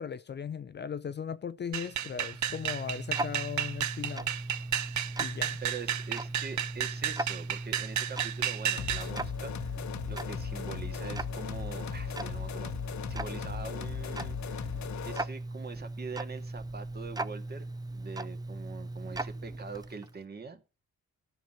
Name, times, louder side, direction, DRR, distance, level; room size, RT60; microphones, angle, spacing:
voice 1, 0.0-4.3 5.2-5.6, left 7 dB, 35° left, 0.5 m, -38 dB
sound 1, 1.7-9.1, right 11 dB, 75° right, 0.8 m, -32 dB
Tick-tock, 1.9-20.2, right 2 dB, 15° right, 0.5 m, -39 dB
voice 2, 5.6-9.8 10.1-12.7 13.0-14.8 15.0-17.7 17.9-20.6, right 5 dB, 35° right, 1.9 m, -43 dB
sound 2, 8.8-15.3, left 10 dB, 70° left, 0.9 m, -38 dB
13.0 x 5.9 x 7.6 m
cardioid pair, 125°, 29 cm